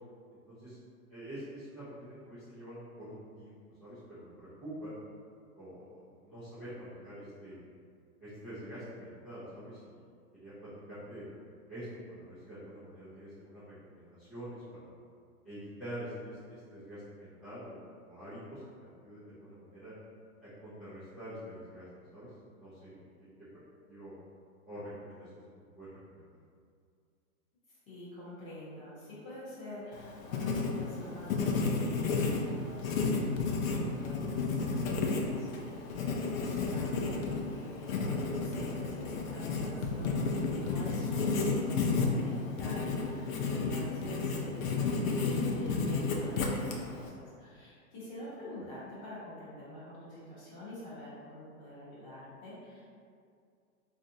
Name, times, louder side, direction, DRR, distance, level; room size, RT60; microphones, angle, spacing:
voice 1, 1.1-3.5 3.8-4.9 5.5-7.6 8.2-11.2 11.7-14.9 15.4-19.9 20.4-21.9 22.1-22.3 22.5-23.3 23.5-23.6 23.9-24.1 24.7-26.3, equal, ahead, -19 dB, 0.6 m, -46 dB
voice 2, 27.9-35.8 36.4-52.8, left 1 dB, 25° left, -10 dB, 1.1 m, -47 dB
Writing, 29.9-47.1, left 4 dB, 65° left, 0.6 m, -32 dB
3.3 x 2.6 x 2.7 m, 2.3 s
hypercardioid pair, 150°, 45 cm